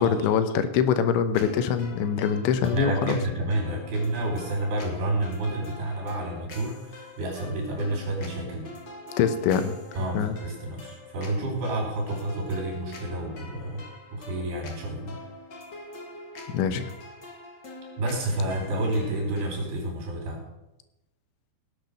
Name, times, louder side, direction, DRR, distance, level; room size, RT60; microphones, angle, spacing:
voice 1, 0.0-3.2 9.2-9.8 10.2-10.4 16.5-16.9, left 7 dB, 85° left, 11 dB, 3.4 m, -24 dB
sound 1, 1.3-19.7, left 2 dB, 55° left, 1.2 m, -44 dB
voice 2, 2.6-8.7 10.0-13.9 14.1-15.2 18.0-20.4, right 1 dB, 65° right, 1 dB, 5.8 m, -29 dB
17.5 x 8.0 x 6.7 m, 0.93 s
omnidirectional pair, 5.2 m